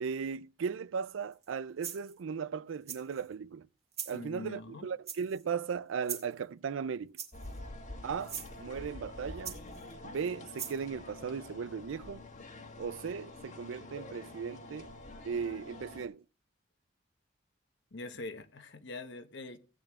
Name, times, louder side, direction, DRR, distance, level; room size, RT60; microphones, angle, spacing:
voice 1, 0.0-3.7 4.1-7.2 8.0-9.6 10.0-12.3 12.8-14.9 15.2-16.2, right 6 dB, 85° right, 0.4 m, -37 dB
sound 1, 1.3-1.5 1.8-2.2 2.9-3.3 3.9-4.2 5.1-5.5 6.0-6.4 7.2-7.6 8.2-8.5 9.4-9.9 10.6-10.8, right 8 dB, 35° right, 1.7 m, -41 dB
voice 2, 4.1-4.9 17.9-19.6, left 2 dB, 65° left, 1.1 m, -43 dB
sound 2, 7.3-16.1, left 2 dB, 40° left, 1.4 m, -47 dB
17.0 x 8.7 x 2.4 m
head